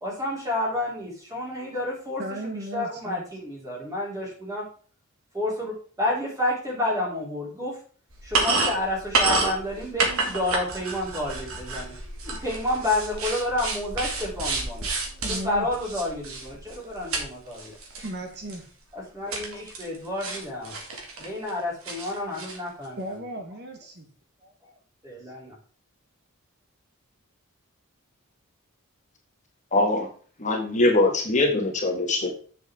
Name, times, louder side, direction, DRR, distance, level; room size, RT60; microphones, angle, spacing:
voice 1, 0.0-4.7 5.3-7.8 8.2-11.9 12.3-14.9 15.2-17.7 18.9-20.7 21.2-23.2 25.0-25.5, left 1 dB, 15° right, -4 dB, 3.3 m, -30 dB
voice 2, 2.2-3.2 15.2-15.7 18.0-18.6 23.0-24.1, right 1 dB, 50° right, 4 dB, 1.1 m, -35 dB
sound 1, 8.1-17.3 17.5-18.1 18.5-18.6 19.3-20.0 20.2-21.5 21.8-22.6, right 3 dB, 75° right, 2.2 m, -29 dB
voice 3, 29.7-30.1 30.4-32.3, left 2 dB, 35° left, 1 dB, 1.7 m, -22 dB
8.2 x 6.8 x 3.6 m, 0.42 s
head